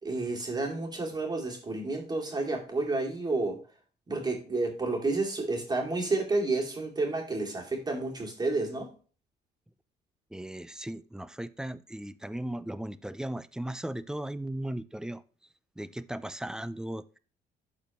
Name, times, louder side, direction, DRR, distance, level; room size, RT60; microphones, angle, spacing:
voice 1, 0.0-3.6 4.1-8.9, right 3 dB, 25° right, 0 dB, 2.5 m, -30 dB
voice 2, 10.3-15.2 15.8-17.2, right 1 dB, 5° right, 16 dB, 0.4 m, -37 dB
12.0 x 4.4 x 3.0 m, 0.39 s
cardioid pair, 110°, 17 cm